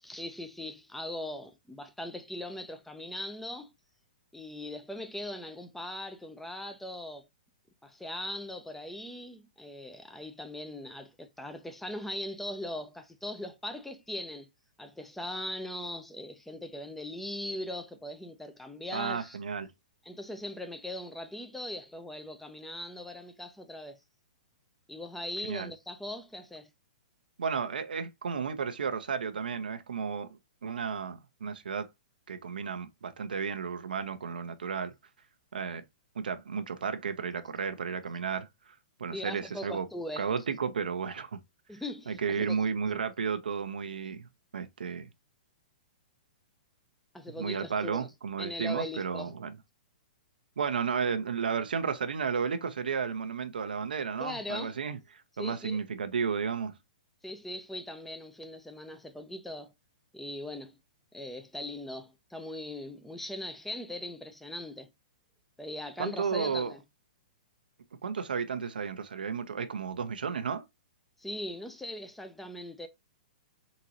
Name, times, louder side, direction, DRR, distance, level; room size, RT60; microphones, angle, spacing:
voice 1, 0.0-3.7 4.3-7.3 7.8-14.5 14.8-19.4 20.0-24.0 24.9-26.7 39.1-40.3 41.7-42.6 47.1-48.1 48.4-49.3 54.2-54.8 55.4-55.8 57.2-59.7 60.1-60.8 61.1-64.9 65.6-66.8 71.2-72.9, left 1 dB, 5° left, 0.7 m, -40 dB
voice 2, 18.9-19.7 25.5-25.7 27.4-30.3 30.6-31.9 32.3-34.9 35.5-35.8 36.2-38.5 39.0-39.9 40.2-41.3 42.1-44.3 44.5-45.1 47.4-49.6 50.6-55.0 55.4-56.7 66.0-66.7 68.0-70.6, right 6 dB, 85° right, 0.7 m, -33 dB
4.0 x 3.7 x 2.9 m
hypercardioid pair, 130°, 5 cm